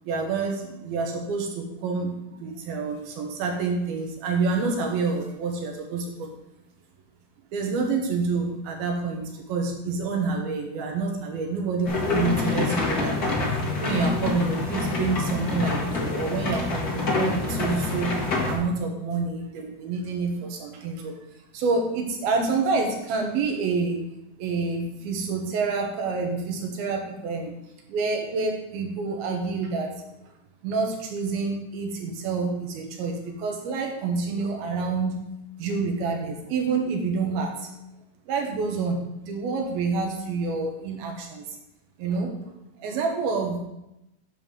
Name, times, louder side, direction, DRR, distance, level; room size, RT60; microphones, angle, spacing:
voice 1, 0.0-6.3 7.5-13.4 13.8-18.2 18.5-21.2 21.5-24.0 24.4-27.6 27.9-30.1 30.6-35.3 35.6-37.7 38.3-41.6 42.0-42.5 42.8-43.6, right 4 dB, 80° right, 2 dB, 3.1 m, -28 dB
sound 1, 11.9-18.6, left 3 dB, 65° left, 0.9 m, -26 dB
9.5 x 3.7 x 6.4 m, 0.89 s
omnidirectional pair, 4.3 m